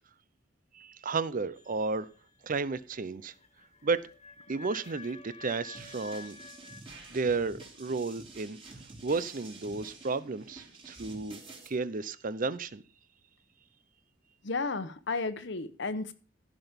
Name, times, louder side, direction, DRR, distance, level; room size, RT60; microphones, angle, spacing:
voice 1, 0.7-2.1 2.4-3.3 3.8-4.1 4.5-6.4 7.1-8.6 9.0-11.4 11.7-12.8, right 4 dB, 45° right, 0.6 m, -32 dB
sound 1, 1.6-6.8, left 4 dB, 35° left, 1.7 m, -50 dB
sound 2, 5.7-11.7, right 3 dB, 30° right, 3.8 m, -49 dB
voice 2, 14.4-16.1, left 3 dB, 65° left, 1.1 m, -33 dB
15.0 x 6.0 x 5.2 m
head